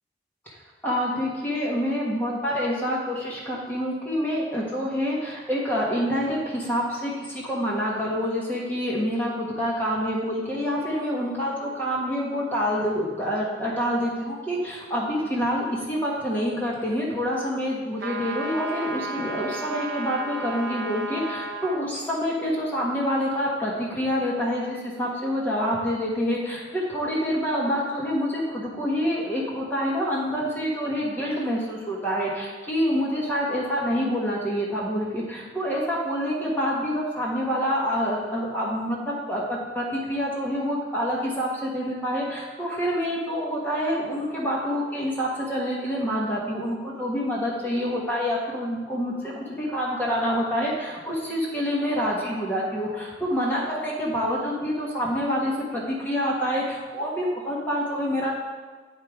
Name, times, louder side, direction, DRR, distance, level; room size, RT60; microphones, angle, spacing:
voice 1, 0.8-58.3, equal, 10° left, -5 dB, 1.2 m, -27 dB
sound 1, 18.0-21.8, right 1 dB, 85° right, 0.8 m, -33 dB
8.7 x 4.7 x 4.8 m, 1.4 s
head